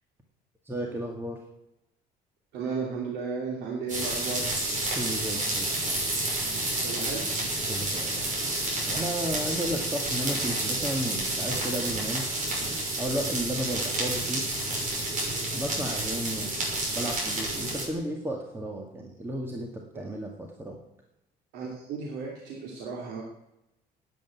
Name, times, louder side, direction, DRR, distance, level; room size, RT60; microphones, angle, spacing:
voice 1, 0.7-1.4 5.0-5.7 7.7-8.2 8.8-12.2 13.0-14.4 15.5-16.5 16.9-19.7 19.9-20.8, right 1 dB, 15° right, 1 dB, 1.9 m, -33 dB
voice 2, 2.5-4.5 6.8-7.3 21.5-23.2, right 4 dB, 85° right, -2 dB, 2.8 m, -34 dB
Frying pan, 3.9-17.8, right 2 dB, 50° right, 6.4 m, -30 dB
10.5 x 9.3 x 9.2 m, 0.89 s
cardioid pair, 110°, 17 cm